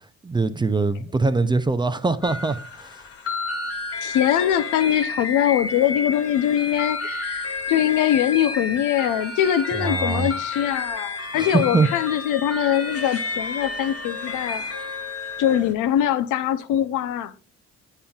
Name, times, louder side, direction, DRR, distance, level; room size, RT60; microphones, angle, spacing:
voice 1, 0.2-2.9 9.7-10.3 11.4-11.9, right 3 dB, 15° right, 0.4 m, -22 dB
sound 1, 2.2-15.7, left 3 dB, 50° left, 1.3 m, -31 dB
voice 2, 4.0-14.6 15.4-17.3, left 11 dB, 85° left, 0.5 m, -22 dB
8.6 x 5.5 x 2.3 m
cardioid pair, 90°, 30 cm